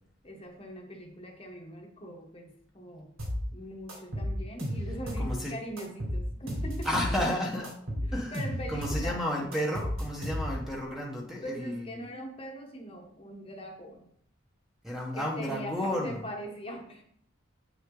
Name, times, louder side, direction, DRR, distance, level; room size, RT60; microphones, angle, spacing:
voice 1, 0.2-3.2 3.5-7.3 8.0-9.2 11.4-14.1 15.1-17.0, equal, 25° left, 1 dB, 1.2 m, -41 dB
sound 1, 3.2-3.4 3.9-5.3 5.8-7.2 7.6-9.1 9.5-10.7, equal, 85° right, 3.4 m, -33 dB
voice 2, 5.2-5.5 6.8-7.7 8.1-12.0 14.8-16.2, equal, ahead, -2 dB, 1.1 m, -32 dB
8.8 x 6.0 x 3.8 m, 0.66 s
head